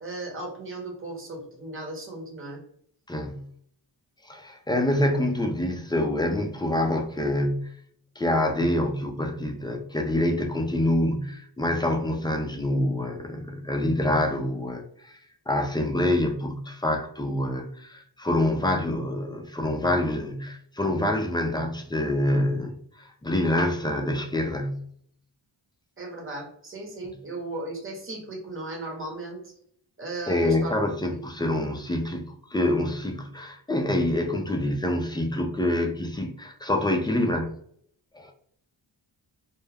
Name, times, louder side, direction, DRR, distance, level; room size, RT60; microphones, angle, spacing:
voice 1, 0.0-2.6 26.0-29.4 30.0-30.7 31.1-31.2, right 2 dB, 30° right, 0 dB, 0.9 m, -36 dB
voice 2, 3.1-3.5 4.2-7.8 8.2-15.2 15.5-24.9 27.0-27.1 30.3-37.5 38.1-38.3, left 1 dB, 10° left, 3 dB, 0.4 m, -26 dB
2.3 x 2.1 x 3.2 m, 0.63 s
cardioid pair, 85°, 45 cm